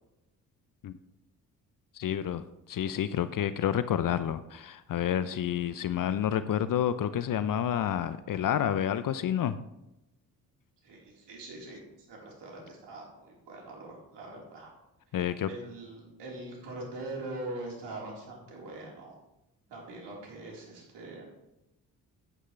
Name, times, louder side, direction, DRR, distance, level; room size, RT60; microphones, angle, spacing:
voice 1, 1.9-9.6 15.1-15.5, left 10 dB, 45° left, 14 dB, 0.7 m, -29 dB
voice 2, 10.8-14.7 15.1-19.2 19.7-21.2, right 2 dB, 65° right, -2 dB, 4.2 m, -43 dB
13.5 x 9.6 x 3.3 m, 0.90 s
hypercardioid pair, 40°, 45 cm